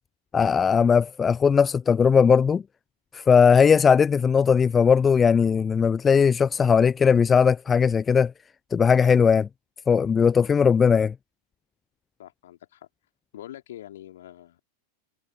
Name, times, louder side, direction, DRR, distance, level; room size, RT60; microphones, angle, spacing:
voice 1, 0.3-2.6 3.1-8.3 8.7-9.5 9.9-11.1, left 6 dB, 20° left, 0.5 m, -19 dB
voice 2, 12.2-12.9 13.3-14.6, left 12 dB, 60° left, 2.9 m, -44 dB
figure-of-eight pair, 90°, 0 cm